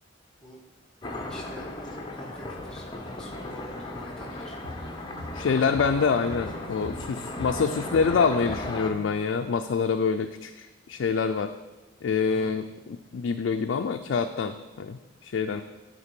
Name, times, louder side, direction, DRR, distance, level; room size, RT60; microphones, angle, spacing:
sound 1, 1.0-8.9, left 1 dB, 25° left, 0.7 m, -37 dB
voice 1, 1.3-4.9 12.3-12.6, left 1 dB, 5° left, -1 dB, 1.4 m, -46 dB
sound 2, 4.6-9.2, equal, 70° right, 1.9 m, -41 dB
voice 2, 5.3-11.5 12.0-15.6, left 5 dB, 70° left, 6 dB, 0.4 m, -26 dB
9.9 x 4.1 x 5.2 m, 1.1 s
head